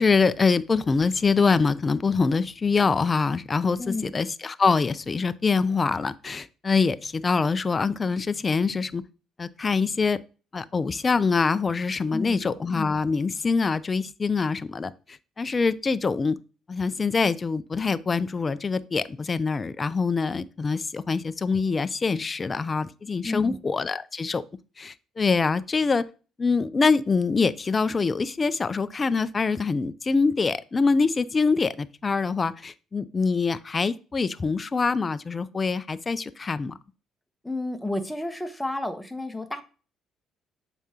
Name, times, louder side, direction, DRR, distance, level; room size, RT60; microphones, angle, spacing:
voice 1, 0.0-9.0 9.4-10.2 10.5-16.4 16.7-24.4 24.8-26.1 26.4-36.8, left 4 dB, 30° left, 0.4 m, -24 dB
voice 2, 3.8-4.1 12.1-12.4 23.2-23.6 37.4-39.6, left 2 dB, 5° left, 1.0 m, -31 dB
7.0 x 5.0 x 2.8 m
cardioid pair, 90°, 0 cm